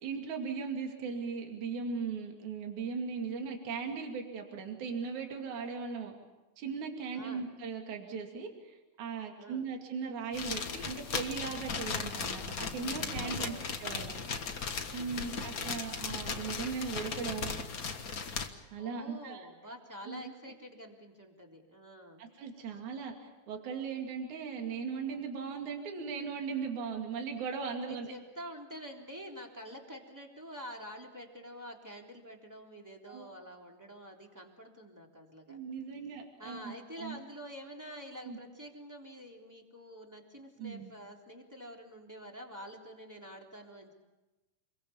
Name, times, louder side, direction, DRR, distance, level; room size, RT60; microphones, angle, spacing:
voice 1, 0.0-6.1 6.6-13.5 13.8-14.1 14.9-17.6 18.7-19.5 20.1-20.2 22.2-28.1 33.1-33.3 35.5-37.2 38.3-38.4 40.6-40.9, right 5 dB, 55° right, 2 dB, 3.9 m, -38 dB
voice 2, 7.1-7.5 9.4-9.7 13.1-13.7 15.1-15.5 18.8-22.2 22.6-22.8 27.8-35.6 36.4-43.9, equal, 5° right, 0 dB, 3.1 m, -48 dB
sound 1, 10.3-18.5, left 5 dB, 70° left, 0.8 m, -37 dB
28.0 x 22.5 x 7.2 m, 1.1 s
omnidirectional pair, 4.1 m